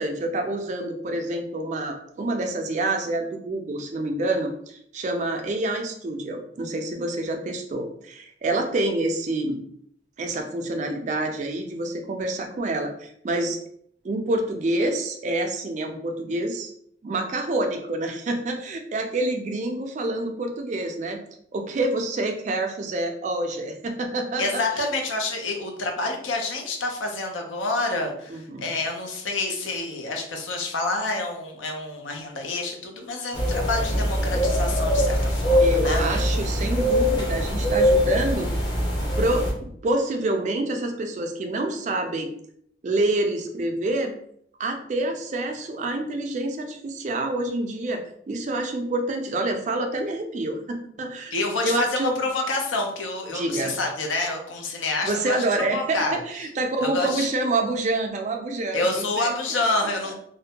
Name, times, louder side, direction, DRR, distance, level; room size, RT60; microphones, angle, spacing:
voice 1, 0.0-9.6 10.2-13.6 14.0-16.7 17.0-21.2 21.5-24.9 28.3-28.7 35.6-38.5 39.2-42.3 42.8-44.1 44.6-51.3 51.6-52.1 53.3-53.7 55.0-59.3, right 2 dB, 40° right, 4 dB, 0.3 m, -27 dB
voice 2, 24.4-36.2 51.3-56.2 56.8-57.3 58.7-60.1, left 2 dB, 85° left, 2 dB, 0.6 m, -28 dB
sound 1, 33.3-39.5, equal, 25° left, 0.6 m, -22 dB
2.5 x 2.1 x 2.8 m, 0.68 s
head